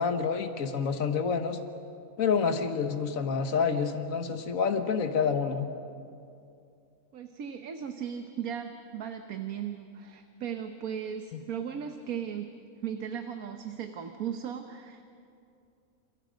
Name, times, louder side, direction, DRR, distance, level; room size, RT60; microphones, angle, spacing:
voice 1, 0.0-1.6 2.2-5.7 11.3-11.4, left 6 dB, 70° left, 7 dB, 1.7 m, -28 dB
voice 2, 7.1-12.5 12.8-15.2, right 8 dB, 80° right, 6 dB, 1.5 m, -37 dB
30.0 x 28.0 x 5.2 m, 2.5 s
omnidirectional pair, 1.5 m